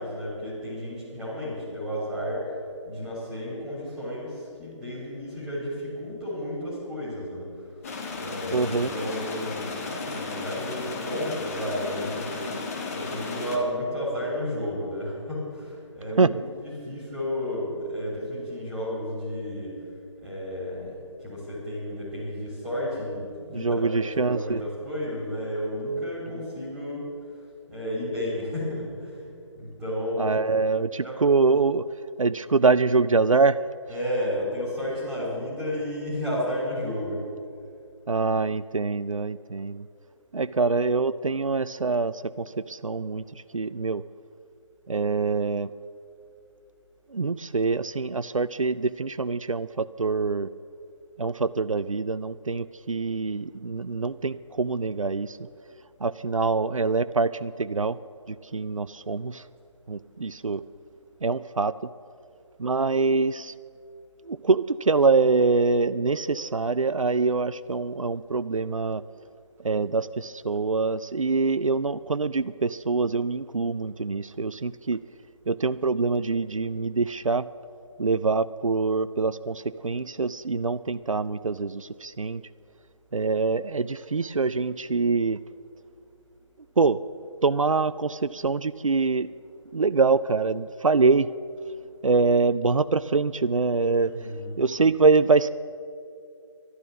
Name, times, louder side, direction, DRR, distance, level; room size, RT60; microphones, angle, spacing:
voice 1, 0.0-2.5 2.8-7.5 8.2-12.6 12.9-19.7 20.2-20.9 21.2-27.0 27.7-29.3 29.5-30.6 31.0-31.3 33.9-37.2 93.9-94.5, equal, 5° right, -6 dB, 3.3 m, -32 dB
sound 1, 7.8-13.6, left 4 dB, 30° left, 1.4 m, -34 dB
voice 2, 8.5-8.9 16.2-16.3 23.5-24.6 30.2-31.9 32.2-33.6 38.1-39.9 40.3-43.2 43.5-44.0 44.9-45.7 47.1-50.5 51.2-55.4 56.0-58.0 58.3-59.4 59.9-60.6 61.2-61.7 62.6-63.5 64.3-69.0 69.6-75.0 75.5-77.5 78.0-82.4 83.1-85.4 86.8-87.0 87.4-89.3 89.7-91.3 92.0-94.1 94.6-95.5, right 4 dB, 85° right, 15 dB, 0.4 m, -24 dB
12.5 x 11.5 x 7.0 m, 2.5 s
figure-of-eight pair, 150°, 16 cm